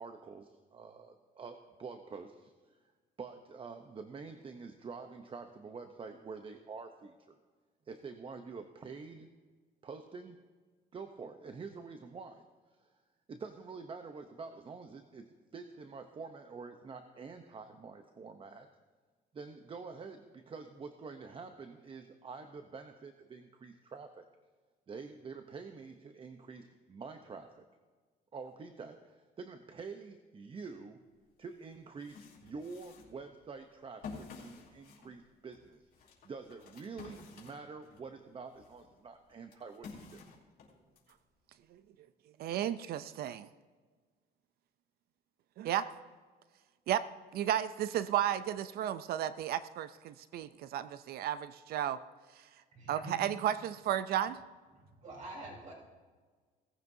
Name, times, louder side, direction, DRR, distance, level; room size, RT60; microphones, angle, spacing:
voice 1, 0.0-2.5 3.2-7.4 7.9-9.3 9.8-10.4 10.9-12.4 12.8-12.9 13.3-18.7 19.3-24.3 24.9-27.6 28.3-31.0 31.4-40.2, right 4 dB, 30° right, 7 dB, 0.7 m, -47 dB
sound 1, 31.2-31.3 31.7-38.1 38.5-41.1, left 4 dB, 60° left, 3.7 m, -51 dB
voice 2, 42.4-43.5 45.6-45.9 46.9-47.0 47.3-52.0 52.9-54.4, right 11 dB, 65° right, 14 dB, 0.5 m, -33 dB
voice 3, 52.7-53.2 55.0-55.7, right 1 dB, 45° right, -2 dB, 3.9 m, -46 dB
18.0 x 14.5 x 2.7 m, 1.4 s
cardioid pair, 110°, 17 cm